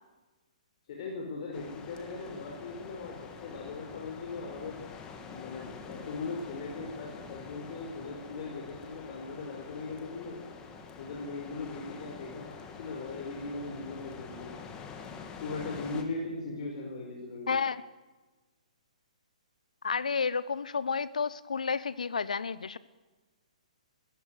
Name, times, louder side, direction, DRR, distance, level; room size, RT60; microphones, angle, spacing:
voice 1, 0.9-4.8 5.3-10.4 11.0-14.6 15.4-17.6, left 3 dB, 50° left, 0 dB, 5.0 m, -39 dB
sound 1, 1.5-16.0, left 6 dB, 20° left, 2.6 m, -46 dB
voice 2, 17.5-17.8 19.8-22.8, left 5 dB, 75° left, 17 dB, 1.0 m, -31 dB
22.0 x 15.5 x 8.2 m, 1.2 s
figure-of-eight pair, 130°, 4 cm